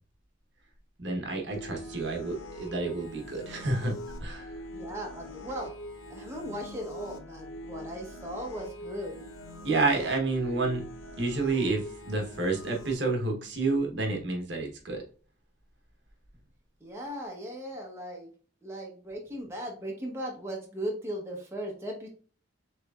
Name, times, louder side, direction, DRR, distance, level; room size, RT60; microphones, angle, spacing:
voice 1, 1.0-4.6 9.6-10.8 11.2-15.0, right 3 dB, 60° right, 2 dB, 1.1 m, -29 dB
sound 1, 1.5-12.9, equal, 70° left, 0.7 m, -43 dB
voice 2, 4.7-5.8 6.1-9.3 16.8-18.3 18.6-22.1, equal, 15° right, -1 dB, 0.9 m, -37 dB
6.8 x 3.2 x 2.3 m, 0.41 s
head